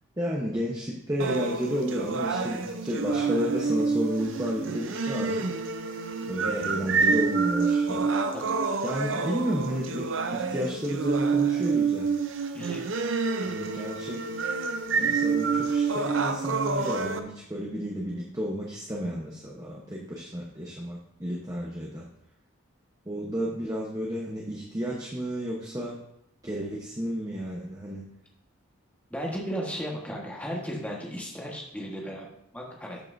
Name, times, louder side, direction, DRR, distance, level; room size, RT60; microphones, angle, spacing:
voice 1, 0.2-5.5 6.3-8.1 8.8-10.0 10.3-12.2 13.4-14.2 15.0-22.0 23.1-26.0 26.4-28.0, equal, 15° right, -3 dB, 1.0 m, -32 dB
sound 1, 1.2-17.2, right 5 dB, 65° right, 0.7 m, -28 dB
voice 2, 8.3-8.7 12.5-12.9 29.1-33.0, equal, 5° left, -2 dB, 1.4 m, -35 dB
13.0 x 5.8 x 2.7 m, 0.77 s
head